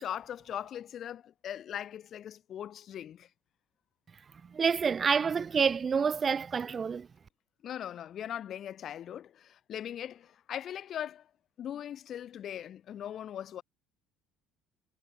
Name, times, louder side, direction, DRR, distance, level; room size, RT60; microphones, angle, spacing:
voice 1, 0.0-3.3 7.6-11.3 11.6-13.6, left 10 dB, 45° left, 2.2 m, -40 dB
voice 2, 4.5-7.1, right 6 dB, 25° right, 1.3 m, -28 dB
cardioid pair, 135°, 0 cm